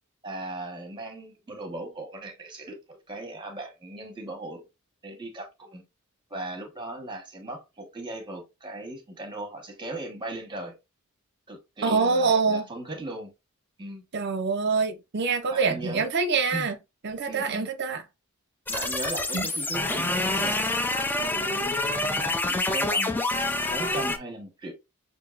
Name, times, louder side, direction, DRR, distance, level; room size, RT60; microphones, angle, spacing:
voice 1, 0.2-4.6 5.0-5.8 6.3-10.8 11.5-13.3 13.8-14.0 15.5-16.1 16.5-16.7 17.3-17.7 18.7-20.7 20.9-23.2 23.7-24.7, right 1 dB, 20° right, 1.1 m, -38 dB
voice 2, 11.8-12.7 14.1-16.8 17.0-18.0 19.3-19.5, right 4 dB, 50° right, 0.6 m, -25 dB
sound 1, 18.7-24.2, left 2 dB, 10° left, 0.4 m, -27 dB
6.1 x 2.6 x 2.4 m
head